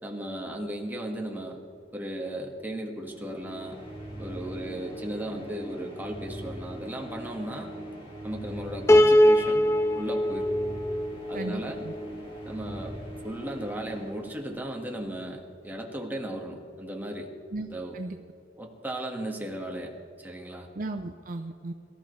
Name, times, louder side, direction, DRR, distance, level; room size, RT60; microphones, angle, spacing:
voice 1, 0.0-1.6 1.9-3.8 4.2-7.7 8.2-9.7 10.0-10.5 11.3-11.8 12.4-13.0 13.2-17.3 17.7-18.0 18.6-20.7, right 1 dB, 10° right, 1 dB, 1.8 m, -36 dB
sound 1, 3.0-14.9, right 1 dB, 30° left, 3.8 m, -41 dB
Piano, 8.9-12.1, left 1 dB, 15° left, 0.4 m, -22 dB
voice 2, 11.3-11.9 17.5-17.7 17.9-18.2 20.7-21.7, right 2 dB, 50° right, 6 dB, 0.6 m, -35 dB
23.0 x 13.5 x 3.3 m, 2.2 s
head